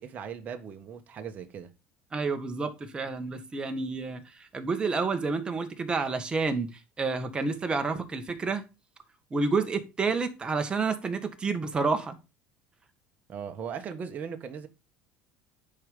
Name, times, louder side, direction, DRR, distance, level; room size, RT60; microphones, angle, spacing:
voice 1, 0.0-1.7 13.3-14.7, right 7 dB, 40° right, 1.4 m, -38 dB
voice 2, 2.1-8.6 9.3-12.2, right 4 dB, 20° right, 1.7 m, -29 dB
10.5 x 4.7 x 5.3 m
supercardioid pair, 110°, 4 cm